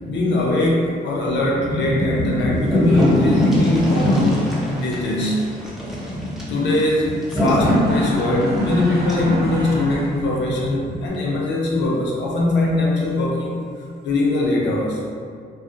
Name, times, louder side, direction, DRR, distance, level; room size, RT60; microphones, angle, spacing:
voice 1, 0.1-5.4 6.5-13.6 14.0-15.0, left 2 dB, 75° left, -3 dB, 0.5 m, -21 dB
sound 1, 1.5-11.1, left 1 dB, 20° right, 0.9 m, -22 dB
sound 2, 2.2-2.3 2.5-9.3 10.6-10.7 11.1-11.2, equal, ahead, 0.5 m, -33 dB
sound 3, 7.5-10.3, right 1 dB, 60° right, 0.6 m, -32 dB
2.3 x 2.0 x 2.6 m, 2.2 s
cardioid pair, 100°, 18 cm